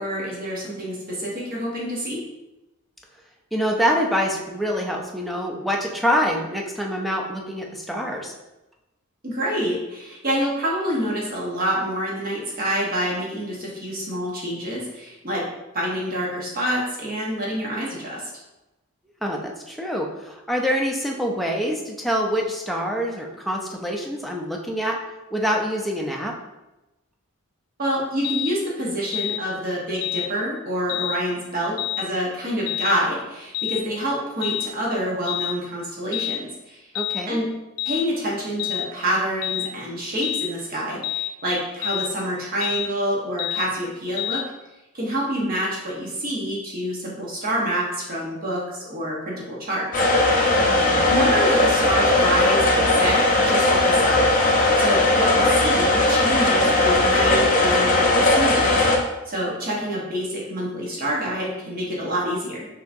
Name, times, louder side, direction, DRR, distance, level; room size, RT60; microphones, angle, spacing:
voice 1, 0.0-2.2 9.2-15.4 15.7-18.3 27.8-36.9 37.3-37.5 37.8-44.4 44.9-49.9 50.2-50.5 51.0-62.7, equal, 45° right, -4 dB, 1.0 m, -27 dB
voice 2, 3.5-8.3 19.2-25.0 25.3-26.3 36.9-37.4 50.7-51.1, equal, ahead, -1 dB, 0.5 m, -25 dB
sound 1, 28.2-28.5 29.1-29.4 30.0-30.3 30.9-31.2 31.8-32.1 32.7-32.9 33.5-33.8 34.4-34.7 35.3-35.6 36.1-36.4 37.0-37.2 37.8-38.1 38.6-38.9 39.4-39.7 40.2-40.5 41.0-41.3 41.8-42.1 42.6-42.9 43.4-43.7 44.2-44.5, left 13 dB, 80° left, 0.3 m, -28 dB
sound 2, 49.9-59.0, left 2 dB, 40° left, 0.8 m, -18 dB
5.8 x 2.9 x 2.6 m, 0.98 s
head